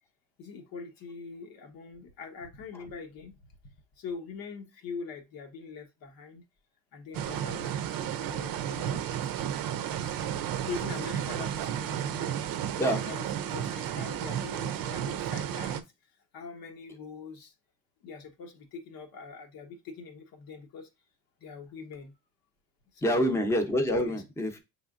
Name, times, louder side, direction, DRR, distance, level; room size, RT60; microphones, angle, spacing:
voice 1, 0.4-3.5 4.0-6.4 6.9-7.7 8.2-9.3 10.6-12.4 12.9-15.8 16.3-17.5 18.0-20.9 21.4-22.1 22.9-23.4 24.0-24.2, left 5 dB, 70° left, 1.0 m, -43 dB
sound 1, 7.1-15.8, right 10 dB, 70° right, 0.6 m, -33 dB
voice 2, 9.9-10.5 12.8-13.0 23.0-24.6, equal, 5° left, 0.7 m, -28 dB
5.4 x 3.3 x 2.4 m
cardioid pair, 110°, 36 cm